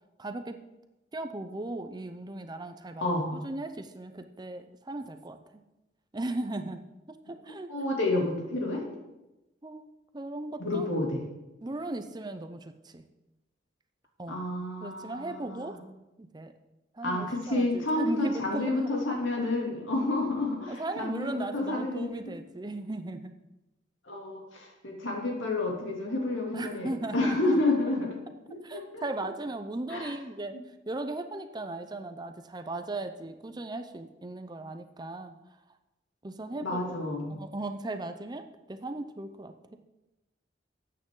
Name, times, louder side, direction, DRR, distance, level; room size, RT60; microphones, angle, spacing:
voice 1, 0.2-0.6 1.1-3.0 3.3-5.4 6.1-6.8 7.1-7.7 9.6-9.8 10.1-10.9 11.6-13.0 14.2-14.4 14.8-15.8 16.2-16.5 16.9-18.9 20.7-23.3 26.5-27.6 28.6-30.5 30.9-35.3 36.2-36.8 37.3-39.8, right 2 dB, 20° right, 8 dB, 0.6 m, -37 dB
voice 2, 3.0-3.3 7.7-8.8 10.6-11.2 14.3-15.8 17.0-22.3 24.1-28.2 28.5-29.0 29.9-30.1 36.6-37.4, left 2 dB, 85° left, -1 dB, 2.8 m, -30 dB
13.0 x 8.8 x 3.8 m, 0.99 s
head